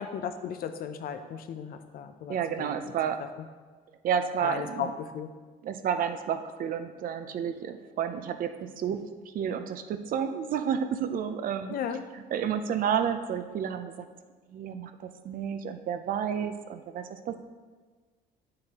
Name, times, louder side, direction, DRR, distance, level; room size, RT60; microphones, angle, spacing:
voice 1, 0.0-2.9 4.4-5.3 11.7-12.1, left 7 dB, 60° left, 9 dB, 0.6 m, -36 dB
voice 2, 2.3-3.2 4.0-4.9 5.6-11.7 12.1-13.9 14.5-17.4, right 8 dB, 55° right, 9 dB, 0.6 m, -31 dB
8.0 x 7.6 x 2.9 m, 1.4 s
cardioid pair, 110°, 17 cm